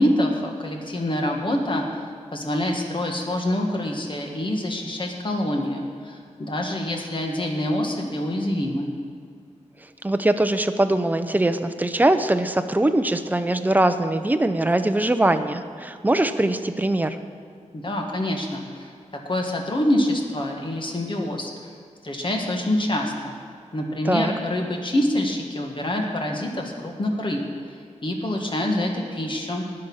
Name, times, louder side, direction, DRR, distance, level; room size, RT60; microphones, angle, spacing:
voice 1, 0.0-2.0 2.3-8.9 17.7-18.9 19.3-21.5 22.0-23.4 23.7-27.4 28.0-29.7, left 1 dB, 40° left, 1 dB, 1.8 m, -26 dB
voice 2, 10.0-17.2 24.0-24.3, right 1 dB, 15° right, 9 dB, 0.7 m, -22 dB
19.5 x 6.7 x 5.6 m, 2.3 s
wide cardioid pair, 105°, 12 cm